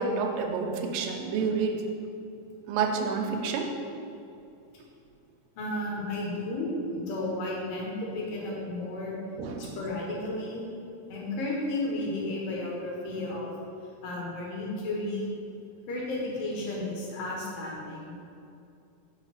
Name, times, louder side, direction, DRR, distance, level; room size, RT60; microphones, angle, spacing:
voice 1, 0.0-1.8 2.7-3.7 9.4-9.8, right 5 dB, 90° right, 3 dB, 2.4 m, -29 dB
voice 2, 5.6-9.1 9.6-10.7 11.1-13.5 14.0-15.3 15.9-18.1, left 2 dB, 80° left, -4 dB, 3.1 m, -33 dB
6.1 x 5.4 x 5.8 m, 2.6 s
omnidirectional pair, 4.0 m